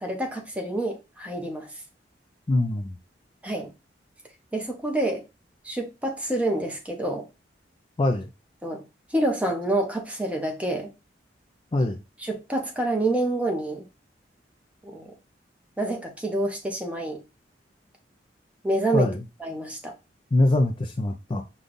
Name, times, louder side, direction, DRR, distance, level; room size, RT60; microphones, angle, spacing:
voice 1, 0.0-1.7 3.4-3.7 4.5-5.2 5.6-7.3 8.6-8.8 9.1-10.9 12.2-13.8 14.8-15.1 15.8-17.2 18.6-19.1 19.4-19.9, right 1 dB, 10° right, 0.9 m, -27 dB
voice 2, 2.5-3.0 8.0-8.3 11.7-12.0 18.9-19.2 20.3-21.4, left 2 dB, 30° left, 0.4 m, -23 dB
5.1 x 2.4 x 3.8 m
head